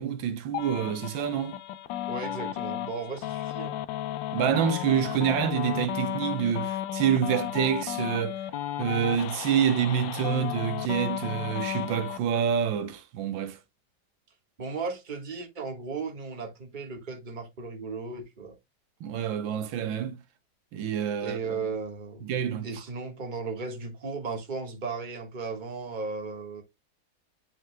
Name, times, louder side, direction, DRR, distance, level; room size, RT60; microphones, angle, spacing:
voice 1, 0.0-1.6 4.3-8.3 8.8-13.6 19.0-20.2 20.7-21.6 22.2-22.7, right 8 dB, 85° right, 1.6 m, -27 dB
sound 1, 0.5-12.2, left 12 dB, 80° left, 1.3 m, -34 dB
voice 2, 2.1-3.8 14.6-18.6 21.2-26.6, right 4 dB, 25° right, 1.5 m, -36 dB
9.8 x 4.7 x 2.2 m
omnidirectional pair, 2.1 m